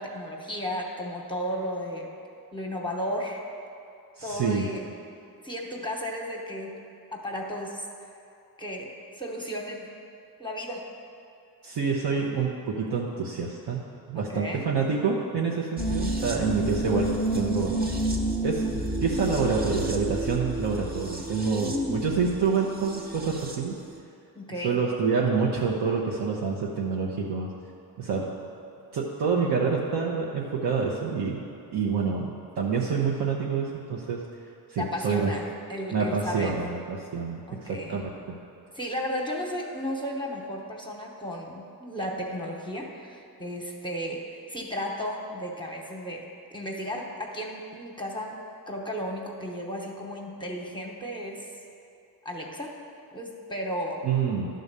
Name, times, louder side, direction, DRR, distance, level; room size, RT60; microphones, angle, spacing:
voice 1, 0.0-2.1 2.5-3.4 4.2-4.9 5.4-6.8 7.1-7.9 8.6-9.9 10.4-10.9 14.1-14.7 21.6-22.1 24.3-24.8 34.8-36.6 37.5-38.0 38.7-48.4 48.7-51.5 52.2-52.8 53.1-54.0, equal, 10° left, -1 dB, 0.9 m, -34 dB
voice 2, 4.2-4.7 11.6-13.8 14.1-17.1 17.3-17.8 18.4-18.6 19.0-23.8 24.6-27.5 28.0-28.3 28.9-31.4 31.7-34.2 34.7-35.3 35.9-38.3 54.0-54.5, right 5 dB, 80° right, -3 dB, 0.9 m, -27 dB
sound 1, 15.8-23.7 23.9-24.0, right 1 dB, 25° right, 1.0 m, -30 dB
11.0 x 3.9 x 6.7 m, 2.7 s
cardioid pair, 95°, 39 cm